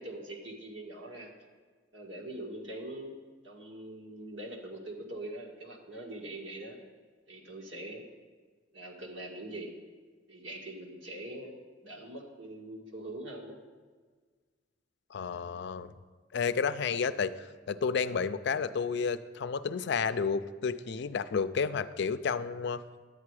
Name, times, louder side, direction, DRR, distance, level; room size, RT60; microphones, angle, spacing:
voice 1, 0.0-1.3 1.9-3.1 3.4-6.8 7.3-8.0 8.7-9.7 10.3-11.5 11.8-13.6, right 1 dB, 85° right, 0 dB, 1.8 m, -43 dB
voice 2, 15.1-15.9 16.3-17.3 17.7-22.8, left 5 dB, 65° left, 13 dB, 0.4 m, -31 dB
10.5 x 8.4 x 4.8 m, 1.5 s
head